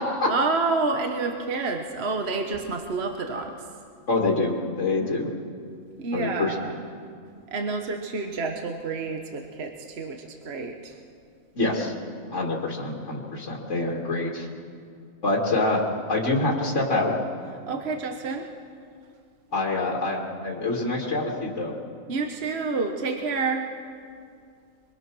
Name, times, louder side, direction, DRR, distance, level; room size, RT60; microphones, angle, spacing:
voice 1, 0.2-3.7 5.0-5.1 6.0-6.8 7.5-11.0 17.7-18.5 22.1-23.7, right 4 dB, 50° right, 4 dB, 1.4 m, -29 dB
voice 2, 4.1-5.3 6.1-6.5 11.6-11.9 12.3-14.5 15.2-15.8 16.1-17.2 19.5-21.7, left 2 dB, 65° left, -2 dB, 2.4 m, -26 dB
25.5 x 22.0 x 6.2 m, 2.3 s
omnidirectional pair, 1.4 m